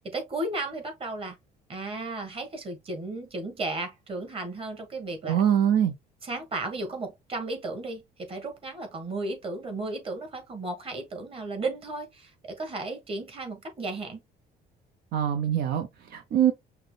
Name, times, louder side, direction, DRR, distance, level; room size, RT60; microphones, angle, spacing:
voice 1, 0.0-1.4 1.7-5.4 6.2-14.2, right 2 dB, 35° right, 1.6 m, -34 dB
voice 2, 5.2-5.9 15.1-16.5, right 9 dB, 70° right, 0.7 m, -24 dB
5.7 x 2.2 x 3.3 m
cardioid pair, 110°, 17 cm